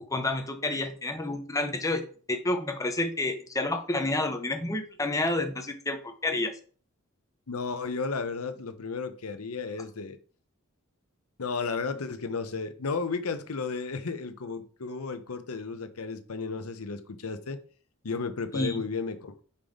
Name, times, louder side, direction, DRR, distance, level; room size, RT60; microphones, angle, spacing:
voice 1, 0.1-6.5 18.5-18.8, left 2 dB, 15° left, 0.8 m, -29 dB
voice 2, 7.5-10.2 11.4-17.6 18.0-19.4, left 4 dB, 85° left, 0.8 m, -33 dB
5.6 x 5.1 x 3.7 m
head